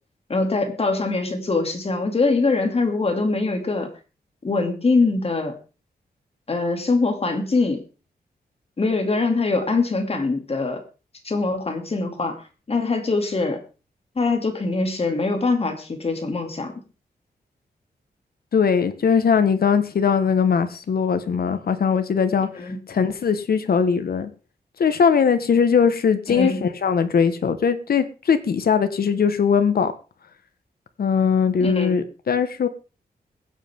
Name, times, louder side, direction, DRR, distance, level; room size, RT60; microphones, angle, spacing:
voice 1, 0.3-3.9 4.4-5.6 6.5-7.8 8.8-10.8 11.2-12.4 12.7-13.6 14.2-16.7 22.5-22.8 26.3-26.6 31.6-32.0, left 3 dB, 35° left, 2.6 m, -23 dB
voice 2, 18.5-24.3 24.8-29.9 31.0-32.7, left 6 dB, 65° left, 1.3 m, -20 dB
22.0 x 8.0 x 3.6 m
wide cardioid pair, 110°, 17 cm